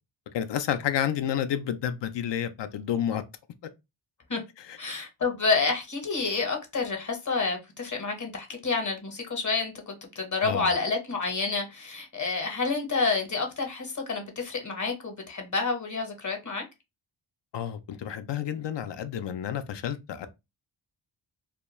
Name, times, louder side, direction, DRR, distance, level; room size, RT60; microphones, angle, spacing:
voice 1, 0.3-3.2 4.6-4.8 10.4-10.7 17.5-20.3, left 9 dB, 60° left, 0.5 m, -30 dB
voice 2, 4.8-16.6, left 4 dB, 35° left, 0.8 m, -29 dB
2.3 x 2.2 x 3.0 m
cardioid pair, 75°, 49 cm